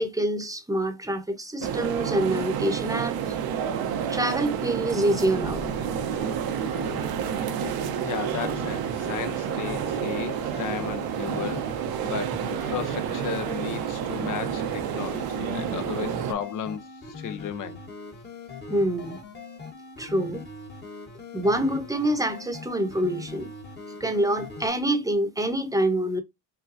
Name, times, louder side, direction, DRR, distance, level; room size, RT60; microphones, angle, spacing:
voice 1, 0.0-3.2 4.1-5.6 18.7-19.2 20.0-20.4 21.3-23.5 23.9-26.2, right 1 dB, 10° right, 0.9 m, -26 dB
sound 1, 1.6-16.3, right 8 dB, 65° right, 0.8 m, -29 dB
sound 2, 4.9-24.7, left 3 dB, 25° left, 1.2 m, -41 dB
voice 2, 8.0-11.7 12.0-17.8, left 9 dB, 50° left, 0.8 m, -34 dB
5.9 x 2.3 x 2.6 m
cardioid pair, 95°, 40 cm